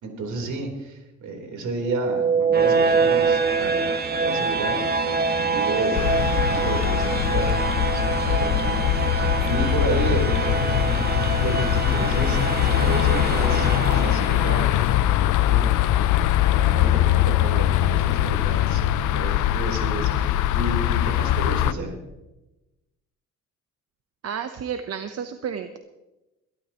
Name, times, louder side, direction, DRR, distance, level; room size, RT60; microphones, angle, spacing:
voice 1, 0.0-4.8 5.3-6.0 6.3-16.1 16.5-18.8 19.1-22.0, right 2 dB, 70° right, 2 dB, 3.9 m, -32 dB
sound 1, 1.8-14.8, right 4 dB, 30° right, 1.4 m, -24 dB
sound 2, 5.9-21.7, left 12 dB, 80° left, 0.6 m, -22 dB
voice 2, 24.2-25.8, right 7 dB, 55° right, 8 dB, 0.9 m, -31 dB
21.5 x 12.5 x 3.0 m, 1.0 s
cardioid pair, 90°, 30 cm